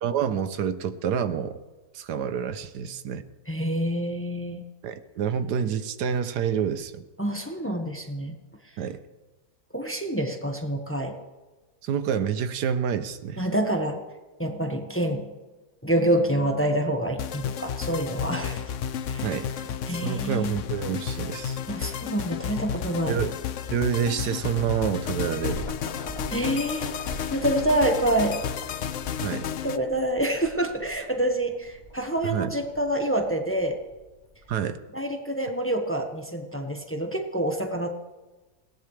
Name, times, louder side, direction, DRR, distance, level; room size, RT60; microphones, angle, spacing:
voice 1, 0.0-1.6 1.9-3.2 4.8-7.0 8.8-9.0 11.8-13.4 19.2-19.5 19.9-21.6 23.1-23.3 23.7-25.7 29.2-29.5 32.2-32.5 34.5-34.8, right 8 dB, 85° right, 11 dB, 1.4 m, -28 dB
voice 2, 3.5-4.6 7.2-8.4 9.7-11.1 13.4-14.0 14.4-15.3 15.8-18.6 19.1-19.3 19.9-20.5 21.7-23.2 26.3-28.4 29.6-33.8 34.9-37.9, right 1 dB, 10° left, 4 dB, 1.2 m, -27 dB
sound 1, 17.2-29.8, left 8 dB, 65° left, 0.9 m, -32 dB
sound 2, 25.4-34.5, equal, 30° left, 2.6 m, -43 dB
20.5 x 17.5 x 3.3 m, 1.2 s
omnidirectional pair, 1.7 m